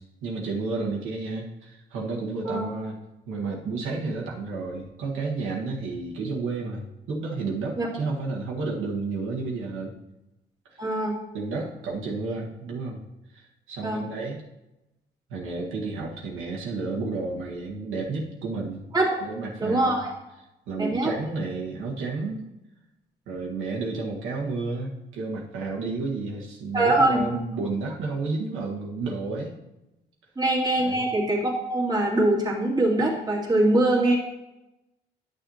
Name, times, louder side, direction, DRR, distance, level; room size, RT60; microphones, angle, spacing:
voice 1, 0.2-3.0 3.3-9.9 10.6-10.8 11.3-13.0 13.3-14.4 15.3-18.8 19.2-20.0 20.7-22.4 23.3-29.5 30.8-31.0, right 3 dB, 90° right, -2 dB, 1.6 m, -31 dB
voice 2, 10.8-11.2 13.8-14.0 18.9-19.2 19.6-20.1 20.8-21.1 26.7-27.2 30.4-34.2, right 1 dB, 20° right, -5 dB, 2.3 m, -23 dB
10.5 x 6.6 x 2.8 m, 0.94 s
cardioid pair, 90°, 20 cm